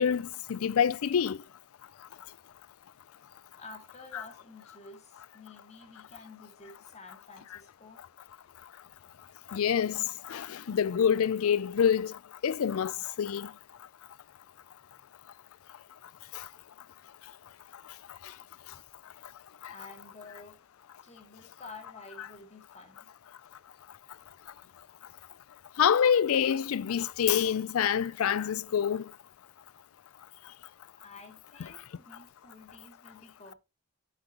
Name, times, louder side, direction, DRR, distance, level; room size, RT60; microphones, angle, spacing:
voice 1, 0.0-1.4 4.1-4.2 9.5-12.1 12.4-12.9 13.2-13.5 16.3-16.5 19.6-19.7 25.8-29.0, left 8 dB, 75° left, 0.4 m, -26 dB
voice 2, 3.6-8.0 14.9-15.1 19.7-20.6 21.0-23.1 31.0-33.5, left 3 dB, 30° left, 2.1 m, -50 dB
9.7 x 8.0 x 2.9 m
head